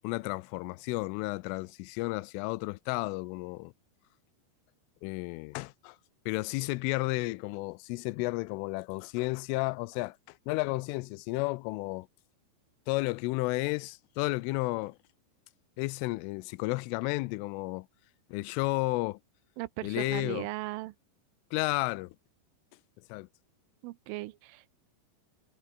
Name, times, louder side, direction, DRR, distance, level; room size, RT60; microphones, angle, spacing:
voice 1, 0.0-3.7 5.0-6.0 6.3-12.1 12.9-15.0 15.8-17.9 18.3-19.2 19.8-20.5 21.5-22.2 23.1-23.3, left 22 dB, 85° left, 3.2 m, -32 dB
voice 2, 19.6-20.9 23.8-24.7, right 19 dB, 80° right, 3.3 m, -37 dB
omnidirectional pair, 5.7 m